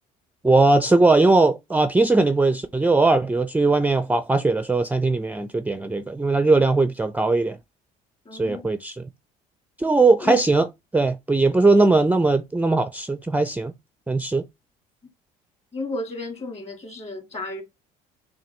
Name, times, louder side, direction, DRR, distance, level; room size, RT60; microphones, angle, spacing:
voice 1, 0.4-7.6 8.3-9.0 9.8-10.7 10.9-13.7 14.1-14.4, right 3 dB, 10° right, 0.4 m, -19 dB
voice 2, 8.3-8.7 10.1-10.4 15.7-17.6, left 2 dB, 35° left, 1.8 m, -33 dB
5.8 x 2.3 x 3.2 m
supercardioid pair, 75°, 19 cm